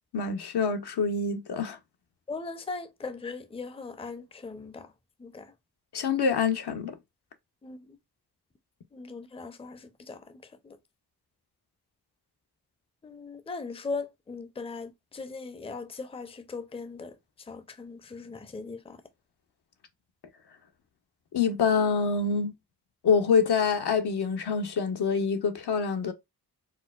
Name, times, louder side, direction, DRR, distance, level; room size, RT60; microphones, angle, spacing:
voice 1, 0.1-1.8 5.9-6.9 21.3-22.5 23.0-26.1, left 5 dB, 70° left, 0.7 m, -26 dB
voice 2, 2.3-4.9 5.2-5.5 7.6-7.8 8.9-10.2 10.6-10.8 13.0-17.1 17.5-19.0, left 4 dB, 15° left, 0.5 m, -39 dB
4.4 x 2.0 x 2.2 m
cardioid pair, 55°, 40 cm